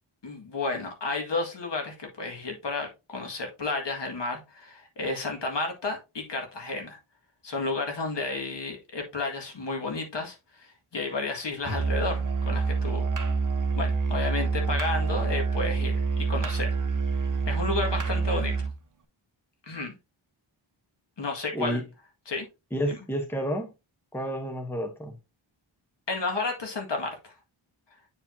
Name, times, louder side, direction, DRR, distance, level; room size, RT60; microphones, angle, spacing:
voice 1, 0.2-7.0 7.4-13.1 13.8-16.7 17.5-18.5 19.7-19.9 21.2-21.8 22.3-22.5 22.9-23.0 26.1-27.3, left 3 dB, 60° left, 1.9 m, -32 dB
Musical instrument, 11.6-18.8, right 4 dB, 40° right, 1.0 m, -27 dB
voice 2, 22.7-23.7 24.1-25.1, equal, 5° left, 0.9 m, -30 dB
8.4 x 4.8 x 2.7 m
wide cardioid pair, 140°, 48 cm